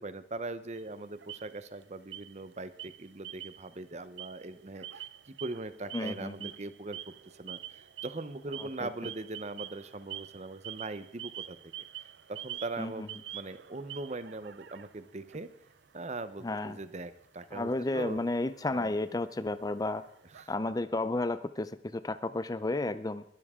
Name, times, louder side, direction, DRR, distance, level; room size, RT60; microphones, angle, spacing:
voice 1, 0.0-7.0 7.4-11.7 12.3-13.1 13.3-15.5 15.9-18.3 18.7-18.9 20.3-20.5, right 2 dB, 40° right, 13 dB, 0.8 m, -41 dB
sound 1, 0.7-1.8 2.1-2.5 2.8-3.8 4.0-20.4, right 12 dB, 85° right, 0.6 m, -47 dB
voice 2, 5.9-6.5 8.6-9.1 12.8-13.1 16.4-16.8 17.5-20.0 20.5-23.2, left 2 dB, 20° left, 13 dB, 0.5 m, -32 dB
21.0 x 12.5 x 3.7 m, 0.70 s
head